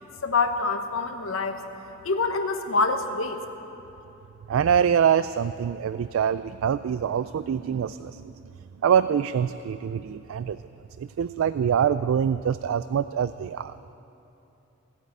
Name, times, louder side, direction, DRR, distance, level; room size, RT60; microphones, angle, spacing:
voice 1, 0.2-1.6 2.0-3.4, left 4 dB, 75° left, 6 dB, 1.0 m, -25 dB
voice 2, 4.5-8.3 8.8-10.7 11.0-13.8, right 8 dB, 75° right, 13 dB, 0.3 m, -24 dB
16.5 x 8.1 x 9.2 m, 3.0 s
head